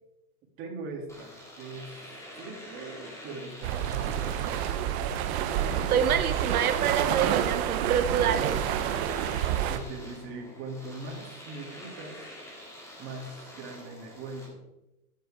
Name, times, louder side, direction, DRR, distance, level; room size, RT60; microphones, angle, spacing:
voice 1, 0.6-2.0 2.4-5.0 6.0-6.4 8.1-8.4 9.2-12.2 13.0-14.6, right 3 dB, 30° right, -1 dB, 2.8 m, -41 dB
Domestic sounds home sounds, 1.1-14.5, left 1 dB, 5° left, 2.5 m, -47 dB
sound 1, 3.6-9.8, right 10 dB, 50° right, 1.0 m, -28 dB
voice 2, 5.9-8.5 9.5-9.7, right 8 dB, 85° right, 10 dB, 1.3 m, -27 dB
13.5 x 8.3 x 3.7 m, 0.93 s
hypercardioid pair, 140°, 43 cm